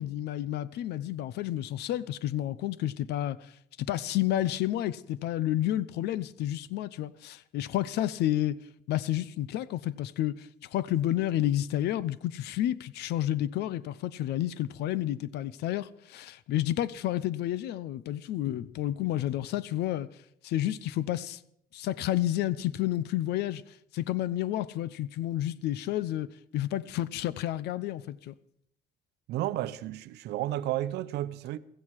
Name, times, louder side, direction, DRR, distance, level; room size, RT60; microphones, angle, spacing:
voice 1, 0.0-3.5 3.8-8.6 8.9-20.1 20.4-21.4 21.7-23.6 23.9-26.3 26.5-28.3, left 13 dB, 80° left, 0.8 m, -30 dB
voice 2, 29.3-31.6, right 14 dB, 80° right, 0.8 m, -32 dB
15.5 x 15.0 x 4.8 m
cardioid pair, 110°, 17 cm